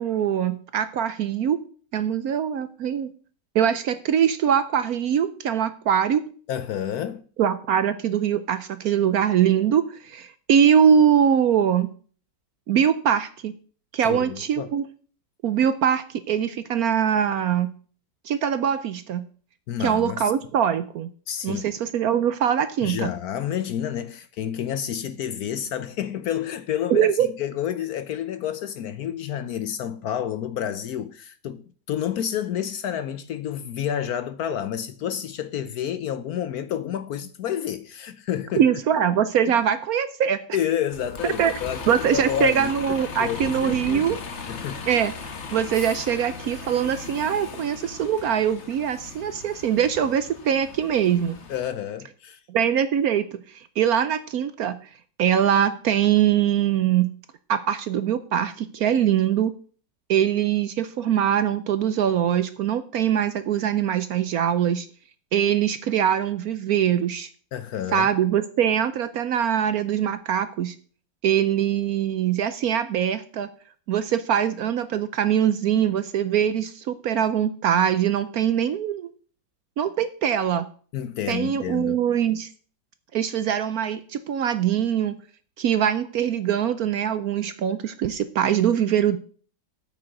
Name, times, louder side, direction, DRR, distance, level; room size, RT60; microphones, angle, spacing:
voice 1, 0.0-1.6 1.9-3.1 3.5-6.2 7.4-11.9 12.7-13.5 13.9-14.8 15.4-17.7 18.2-19.2 19.8-21.1 21.4-23.1 26.9-27.3 38.6-40.4 41.4-41.5 41.9-44.2 44.8-45.1 45.5-51.4 52.5-54.8 55.2-57.1 57.5-59.5 60.1-64.9 65.3-67.3 67.9-70.7 71.2-73.5 73.9-79.1 79.8-80.7 81.3-82.5 83.1-85.2 85.6-89.2, right 9 dB, 65° right, 0.9 m, -22 dB
voice 2, 6.5-7.2 14.0-14.7 19.7-20.3 21.3-21.6 22.8-27.1 27.4-38.6 39.4-39.5 40.5-42.7 43.2-44.2 44.5-44.8 51.5-52.4 67.5-68.1 80.9-82.0, left 10 dB, 70° left, 1.0 m, -29 dB
Bus, 40.9-51.7, left 4 dB, 45° left, 1.3 m, -37 dB
8.6 x 6.3 x 7.8 m
omnidirectional pair, 2.0 m